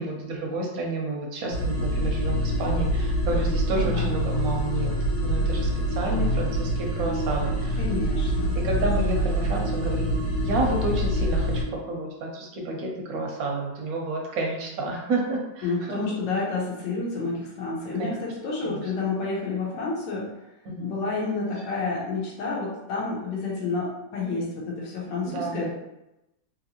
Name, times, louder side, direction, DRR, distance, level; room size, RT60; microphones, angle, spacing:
voice 1, 0.0-4.9 5.2-7.8 8.5-10.1 10.4-16.0 18.6-18.8 20.6-21.0 25.2-25.7, right 2 dB, 65° right, 0 dB, 0.9 m, -30 dB
sound 1, 1.5-11.6, equal, 90° left, 1.7 m, -25 dB
voice 2, 3.7-4.1 7.8-8.5 15.6-20.3 20.8-25.7, left 3 dB, 75° left, -4 dB, 1.4 m, -29 dB
3.5 x 2.7 x 2.8 m, 0.92 s
omnidirectional pair, 2.1 m